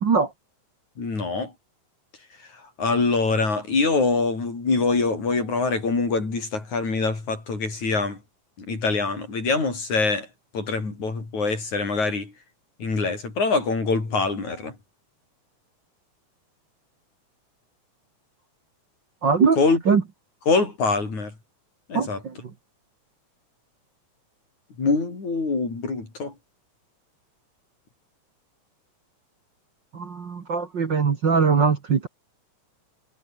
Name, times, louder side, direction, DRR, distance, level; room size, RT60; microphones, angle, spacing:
voice 1, 1.0-1.5 2.8-8.2 8.6-10.3 10.5-12.3 12.8-14.7 19.6-19.8 20.5-21.3 21.9-22.2 24.8-26.3, left 3 dB, 75° left, 8.2 m, -24 dB
voice 2, 19.2-19.6 19.9-20.0 21.9-22.3 29.9-32.1, right 5 dB, 40° right, 2.1 m, -21 dB
omnidirectional pair, 3.4 m